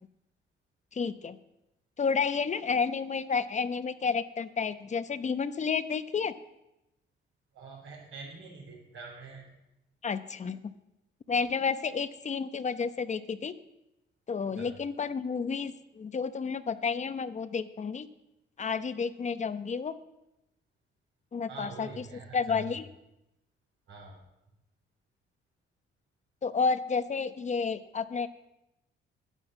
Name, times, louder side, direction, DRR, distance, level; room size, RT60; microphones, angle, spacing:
voice 1, 0.9-1.4 2.0-6.3 10.0-10.7 11.3-13.5 14.3-18.1 18.6-19.9 21.3-22.0 22.3-22.9 26.4-28.3, left 5 dB, 35° left, 12 dB, 0.9 m, -31 dB
voice 2, 7.5-9.5 14.6-14.7 21.5-22.6 23.9-24.2, right 4 dB, 80° right, -6 dB, 3.9 m, -45 dB
11.0 x 10.0 x 7.4 m, 0.91 s
cardioid pair, 90°, 20 cm